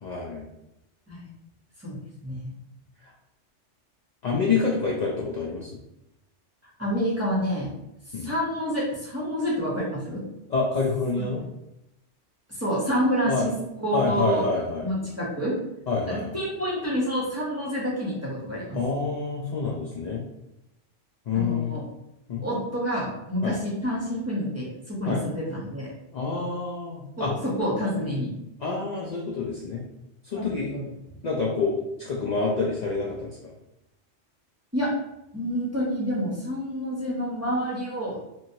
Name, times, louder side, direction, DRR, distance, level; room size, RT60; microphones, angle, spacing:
voice 1, 0.0-0.4 4.2-5.7 8.1-8.3 10.5-11.4 13.3-13.4 13.9-14.9 15.9-16.4 18.7-20.2 21.3-21.7 22.3-22.4 23.4-23.6 25.1-25.2 26.1-27.3 28.0-28.2 28.6-29.8 30.2-30.8 31.2-33.3, left 4 dB, 75° left, -3 dB, 0.4 m, -27 dB
voice 2, 1.8-2.4 6.8-7.7 8.2-10.2 11.2-11.3 12.5-13.5 13.8-14.4 14.8-15.5 16.1-18.8 21.3-21.8 22.4-25.9 27.2-28.3 30.3-30.8 34.7-34.9 35.3-38.2, equal, 15° right, -6 dB, 0.6 m, -28 dB
2.9 x 2.7 x 2.6 m, 0.89 s
omnidirectional pair, 1.3 m